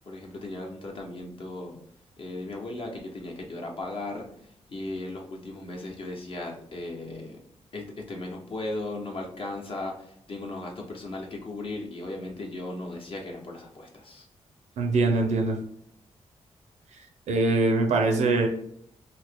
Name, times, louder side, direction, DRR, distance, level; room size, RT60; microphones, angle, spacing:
voice 1, 0.1-1.8 2.2-4.3 4.7-7.4 7.7-14.3, left 2 dB, 50° left, 0 dB, 0.9 m, -36 dB
voice 2, 14.8-15.6 17.3-18.5, right 3 dB, 80° right, 4 dB, 0.6 m, -23 dB
2.8 x 2.5 x 3.5 m, 0.69 s
cardioid pair, 95°, 12 cm